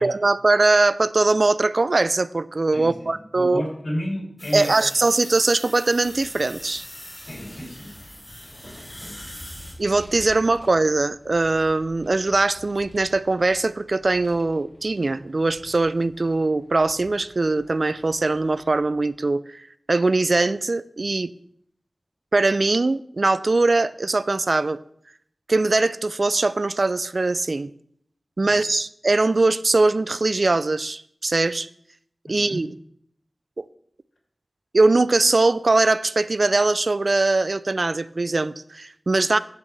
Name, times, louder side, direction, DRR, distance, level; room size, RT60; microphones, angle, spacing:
voice 1, 0.0-3.6 4.5-6.9 9.8-21.3 22.3-24.8 25.5-27.7 28.4-31.7 32.3-32.7 33.6-33.7 34.7-39.4, right 3 dB, 65° right, 16 dB, 0.4 m, -21 dB
voice 2, 2.7-4.7 7.2-7.9 9.0-9.2 28.4-28.6 32.2-32.6, equal, 90° left, -2 dB, 3.1 m, -32 dB
sound 1, 4.4-9.7, left 1 dB, 25° left, 2.9 m, -41 dB
Vehicle, 5.9-19.1, equal, 45° left, 2.8 m, -48 dB
10.5 x 8.1 x 3.4 m, 0.67 s
wide cardioid pair, 50°, 0 cm